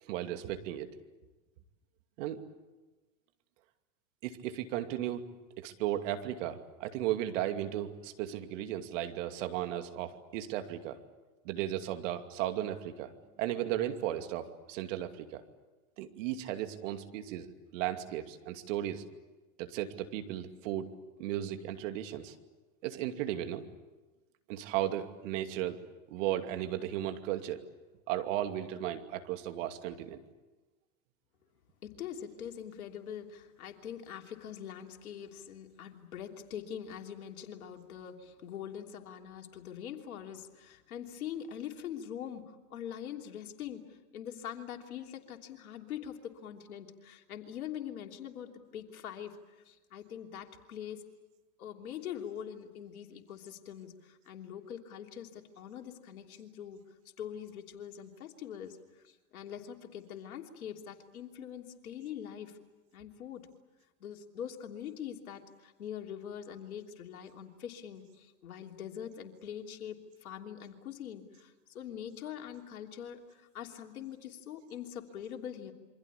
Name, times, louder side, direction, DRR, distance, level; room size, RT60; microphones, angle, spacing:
voice 1, 0.0-0.9 2.2-2.4 4.2-5.2 5.6-11.0 11.4-13.1 13.4-15.4 16.0-17.5 17.7-19.0 19.6-20.9 21.2-22.3 22.8-23.7 24.5-25.8 26.1-27.6 28.1-30.2, right 12 dB, 60° right, 7 dB, 2.7 m, -35 dB
voice 2, 31.8-49.4 49.6-51.1 51.6-56.8 57.2-62.6 62.9-63.5 64.0-75.7, left 9 dB, 75° left, 3 dB, 3.2 m, -43 dB
27.5 x 24.5 x 8.5 m, 1.2 s
hypercardioid pair, 105°, 44 cm